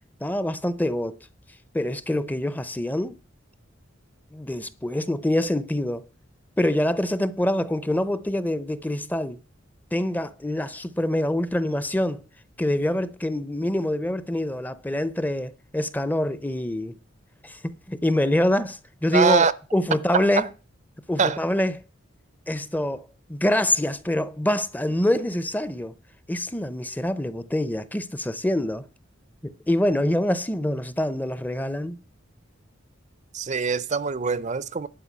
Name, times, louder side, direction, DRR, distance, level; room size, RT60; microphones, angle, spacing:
voice 1, 0.2-1.2 1.7-3.2 4.3-6.1 6.6-9.4 9.9-12.2 12.6-16.9 17.4-19.5 19.7-20.5 21.1-21.8 22.5-25.9 26.3-28.8 29.4-32.0, left 1 dB, 10° left, 0.6 m, -25 dB
voice 2, 19.1-19.5 20.1-20.5 21.2-21.4 33.3-34.9, right 5 dB, 35° right, 0.6 m, -23 dB
11.5 x 5.1 x 8.3 m
head